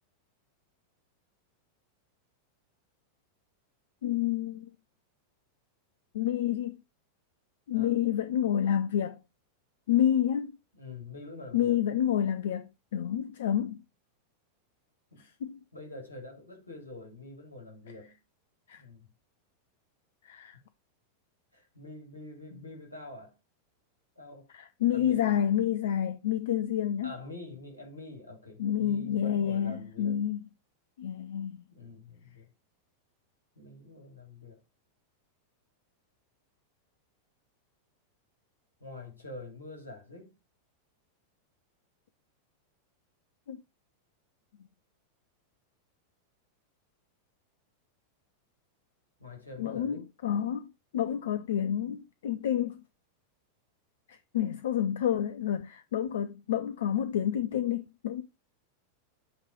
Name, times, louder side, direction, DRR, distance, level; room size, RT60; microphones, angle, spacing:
voice 1, 4.0-4.7 6.1-6.8 7.7-9.2 9.9-10.5 11.5-13.8 15.4-15.6 18.7-18.8 20.2-20.6 24.5-27.1 28.6-30.4 31.0-31.6 43.5-43.6 49.6-50.7 50.9-52.8 54.1-58.2, left 10 dB, 60° left, 0.5 m, -29 dB
voice 2, 10.7-11.8 15.1-15.3 15.7-18.2 18.8-19.1 21.5-23.3 24.2-24.5 24.9-25.3 27.0-30.2 31.7-32.5 33.5-34.6 38.8-40.4 49.2-50.1, left 2 dB, 85° left, 2.8 m, -46 dB
8.1 x 3.2 x 5.0 m
figure-of-eight pair, 90°, 0 cm